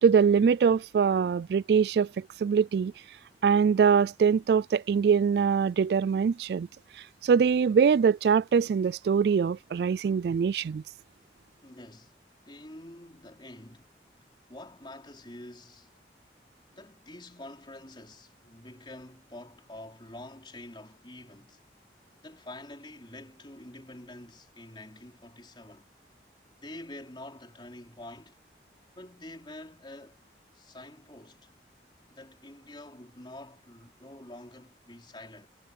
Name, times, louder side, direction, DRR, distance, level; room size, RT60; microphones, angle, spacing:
voice 1, 0.0-2.9 3.4-6.7 7.0-10.8, right 6 dB, 65° right, 0.3 m, -23 dB
voice 2, 11.6-12.2 12.5-13.9 14.5-15.9 16.7-21.6 22.2-25.9 26.6-28.4 28.9-30.2 30.5-31.5 32.1-35.5, left 1 dB, 25° left, 3.9 m, -47 dB
head